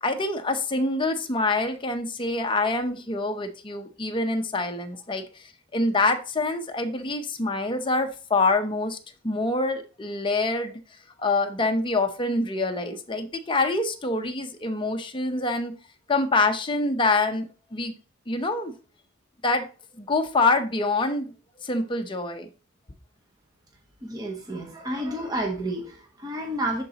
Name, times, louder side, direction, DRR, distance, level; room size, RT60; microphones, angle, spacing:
voice 1, 0.0-5.4 5.7-9.0 9.2-10.7 11.2-15.7 16.1-17.9 18.3-18.7 19.4-19.7 20.0-21.3 21.6-22.5, left 2 dB, 20° left, 0.6 m, -25 dB
voice 2, 24.0-26.8, right 1 dB, 15° right, 0.9 m, -30 dB
10.5 x 3.9 x 2.8 m
head